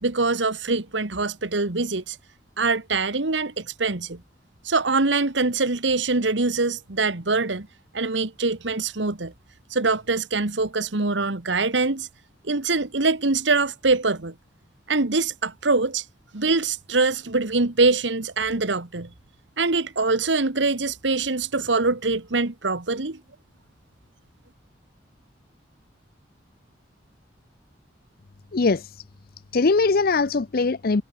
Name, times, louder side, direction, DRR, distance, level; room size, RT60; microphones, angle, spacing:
voice 1, 0.0-2.2 2.6-4.2 4.6-7.7 7.9-9.3 9.7-12.1 12.4-14.3 14.9-16.0 16.3-19.1 19.6-23.2, right 3 dB, 75° right, 1.6 m, -23 dB
voice 2, 28.5-29.0 29.5-31.0, left 3 dB, 50° left, 0.6 m, -21 dB
head